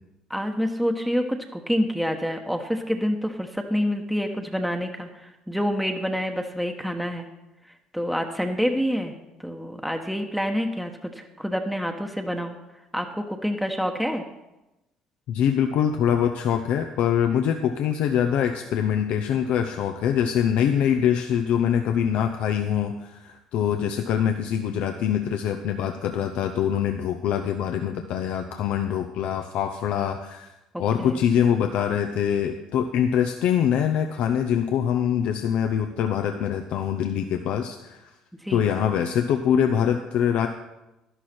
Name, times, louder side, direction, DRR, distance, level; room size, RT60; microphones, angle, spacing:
voice 1, 0.3-7.3 7.9-9.1 9.4-12.6 12.9-14.2 31.0-31.2 38.4-38.6, equal, ahead, 3 dB, 1.1 m, -27 dB
voice 2, 15.3-30.5 30.8-38.1 38.5-40.5, left 9 dB, 70° left, 5 dB, 0.7 m, -24 dB
11.5 x 11.5 x 4.4 m, 0.97 s
supercardioid pair, 70°, 2 cm